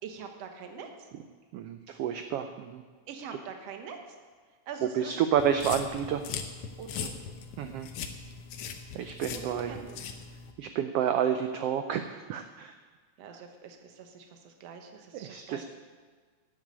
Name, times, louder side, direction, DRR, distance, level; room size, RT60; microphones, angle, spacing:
voice 1, 0.0-1.1 3.1-4.2 4.7-5.1 6.8-7.1 9.3-10.0 13.2-15.6, right 6 dB, 65° right, 5 dB, 2.2 m, -44 dB
voice 2, 1.5-2.8 4.9-6.2 7.6-7.9 8.9-9.8 10.6-12.7 15.1-15.6, right 9 dB, 90° right, 8 dB, 1.3 m, -30 dB
sound 1, 5.4-10.5, left 6 dB, 65° left, 1.6 m, -40 dB
11.0 x 8.0 x 8.7 m, 1.5 s
omnidirectional pair, 3.4 m